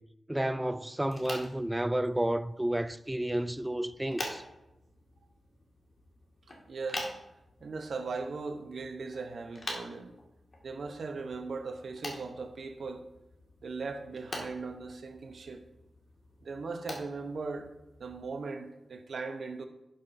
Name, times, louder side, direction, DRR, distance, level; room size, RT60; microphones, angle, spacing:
voice 1, 0.3-4.4, right 1 dB, 15° right, 0.4 m, -31 dB
sound 1, 1.0-18.3, left 1 dB, 50° left, 1.9 m, -46 dB
voice 2, 6.7-7.1 7.6-10.1 10.6-13.0 13.6-15.6 16.4-17.7 18.0-19.7, right 4 dB, 70° right, 0.8 m, -38 dB
11.5 x 5.7 x 2.6 m
cardioid pair, 45°, 0 cm